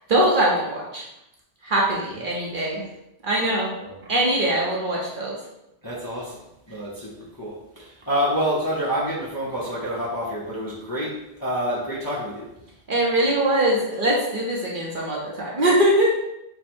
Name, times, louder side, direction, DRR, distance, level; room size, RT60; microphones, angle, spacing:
voice 1, 0.1-1.1 1.6-2.8 3.2-3.7 4.1-5.4 12.9-16.2, right 1 dB, 50° right, -3 dB, 1.0 m, -22 dB
voice 2, 2.3-2.6 3.8-4.0 5.8-6.4 6.7-12.5, equal, 20° left, -6 dB, 0.7 m, -28 dB
4.5 x 2.3 x 4.3 m, 0.86 s
omnidirectional pair, 1.2 m